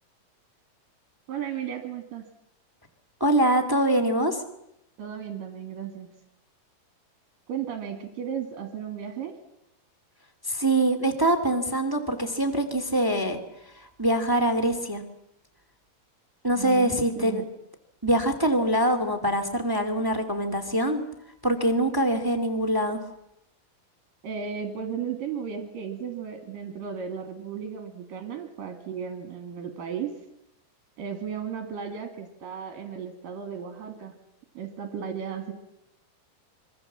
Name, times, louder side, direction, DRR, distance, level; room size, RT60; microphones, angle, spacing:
voice 1, 1.3-2.2 5.0-6.1 7.5-9.3 16.6-17.5 24.2-30.1 31.0-34.1 34.6-35.5, right 7 dB, 60° right, 5 dB, 3.5 m, -35 dB
voice 2, 3.2-4.4 10.4-13.4 14.0-15.0 16.4-17.4 18.0-21.0 21.4-23.0, right 1 dB, 10° right, 8 dB, 1.2 m, -24 dB
26.0 x 24.5 x 7.4 m, 0.81 s
omnidirectional pair, 4.5 m